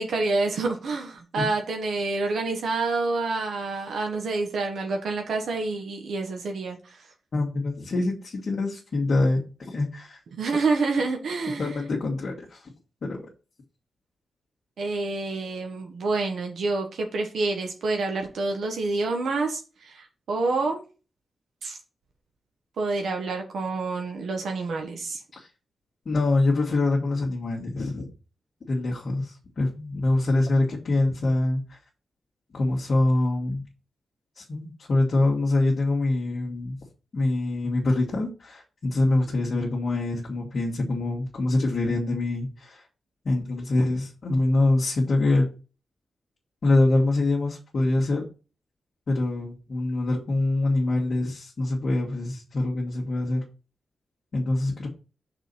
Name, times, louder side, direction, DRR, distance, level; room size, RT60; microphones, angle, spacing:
voice 1, 0.0-7.0 10.4-11.8 14.8-20.8 21.6-21.8 22.8-25.2, right 3 dB, 80° right, 2 dB, 1.3 m, -28 dB
voice 2, 7.3-10.2 11.6-12.7 13.0-13.2 25.3-25.5 26.1-28.1 28.7-31.8 32.5-33.6 34.4-36.8 37.1-42.8 43.3-45.5 46.6-48.2 49.1-53.4 54.3-54.9, left 2 dB, 50° left, -3 dB, 1.6 m, -25 dB
6.0 x 4.0 x 5.5 m, 0.33 s
wide cardioid pair, 125°, 0 cm